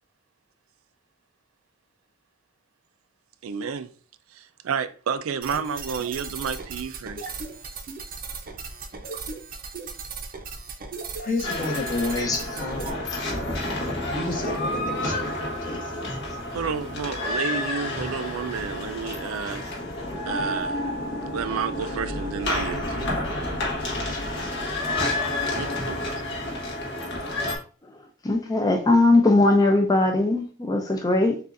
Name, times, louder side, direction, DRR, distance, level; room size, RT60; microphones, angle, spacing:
voice 1, 3.4-3.9 4.3-7.4 16.5-19.7 20.3-20.8 21.3-23.2 25.6-26.3, right 6 dB, 80° right, 0.4 m, -31 dB
sound 1, 5.4-12.9, right 4 dB, 45° right, 0.6 m, -37 dB
voice 2, 11.2-13.0 14.1-15.3 15.7-16.0 23.5-24.5, left 2 dB, 45° left, 1.1 m, -31 dB
sound 2, 11.4-27.6, left 1 dB, 60° left, 1.3 m, -30 dB
voice 3, 12.1-12.5 13.1-13.2 28.2-31.4, left 2 dB, 20° left, 0.5 m, -20 dB
6.6 x 2.4 x 2.5 m
head